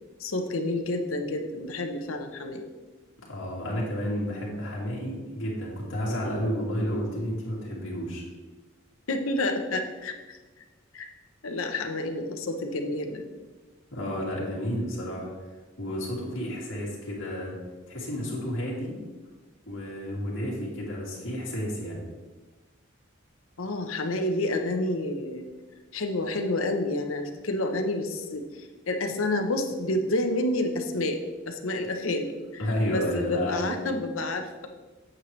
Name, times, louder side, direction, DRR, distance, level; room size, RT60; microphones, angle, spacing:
voice 1, 0.2-2.6 9.1-10.4 10.9-11.1 11.4-13.3 23.6-25.5 25.9-31.2 31.5-32.6 32.9-34.7, left 2 dB, 85° left, 5 dB, 0.9 m, -29 dB
voice 2, 3.2-8.2 13.9-15.3 15.8-17.5 17.9-18.9 19.7-22.0 32.6-33.7, equal, 65° left, -5 dB, 2.6 m, -31 dB
8.7 x 7.5 x 3.2 m, 1.3 s
head